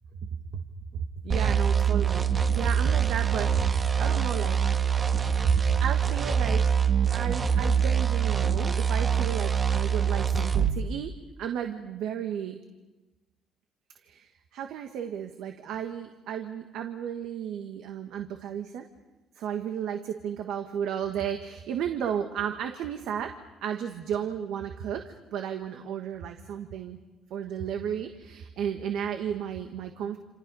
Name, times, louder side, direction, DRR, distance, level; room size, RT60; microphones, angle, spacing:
voice 1, 0.9-4.6 5.4-6.6 7.1-11.1 11.4-12.6 14.0-18.8 19.3-23.3 23.6-27.0 27.3-30.2, right 8 dB, 75° right, 6 dB, 1.5 m, -33 dB
sound 1, 1.3-10.8, right 7 dB, 30° right, 1.4 m, -24 dB
28.0 x 27.5 x 5.5 m, 1.1 s
cardioid pair, 115°, 0 cm